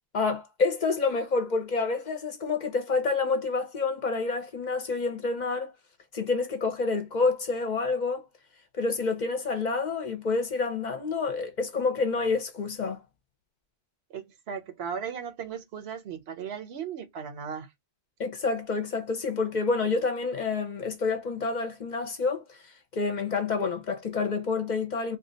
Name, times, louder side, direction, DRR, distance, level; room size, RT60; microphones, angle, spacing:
voice 1, 0.1-5.7 6.1-8.2 8.8-13.0 18.2-22.6 22.9-25.2, left 4 dB, 50° left, 0.7 m, -28 dB
voice 2, 14.1-17.7, right 7 dB, 75° right, 1.0 m, -36 dB
2.7 x 2.3 x 3.8 m
omnidirectional pair, 1.1 m